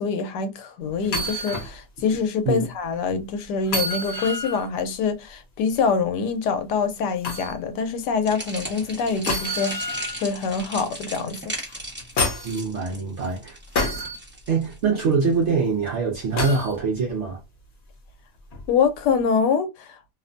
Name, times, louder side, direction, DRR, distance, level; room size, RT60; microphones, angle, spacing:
voice 1, 0.0-9.8 10.2-11.5 18.7-20.0, left 5 dB, 85° left, 1.2 m, -25 dB
sound 1, 1.0-1.7 2.2-2.3 3.7-4.7 7.2-7.5 9.3-10.2 11.7-12.6 13.8-14.2 16.4-16.7 18.5-18.7, left 2 dB, 50° left, 1.0 m, -27 dB
sound 2, 8.2-15.5, equal, 10° right, 0.5 m, -36 dB
voice 2, 12.4-13.6 14.5-17.4, right 4 dB, 60° right, 0.8 m, -24 dB
2.9 x 2.1 x 2.4 m
omnidirectional pair, 1.8 m